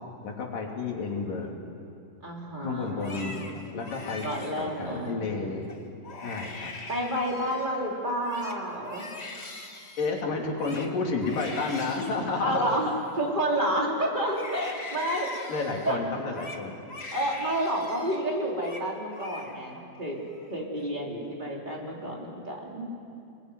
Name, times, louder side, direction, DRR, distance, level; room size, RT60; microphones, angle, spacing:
voice 1, 0.2-1.5 2.6-3.4 3.7-4.3 4.6-5.7 6.2-6.7 10.0-12.7 15.5-16.8, left 4 dB, 90° left, 0 dB, 4.7 m, -31 dB
voice 2, 2.2-3.4 4.2-5.3 6.9-9.1 12.4-12.9 13.2-15.3 15.8-16.0 17.1-20.2 20.5-22.9, right 1 dB, 15° right, -2 dB, 3.8 m, -30 dB
Crying sobbing, 2.9-5.1 5.6-5.8 6.0-7.8 8.1-13.8 14.2-18.2 18.5-18.9 19.1-19.8 20.2-20.8, left 2 dB, 30° left, 1.3 m, -42 dB
26.5 x 21.5 x 9.6 m, 2.6 s
omnidirectional pair, 3.8 m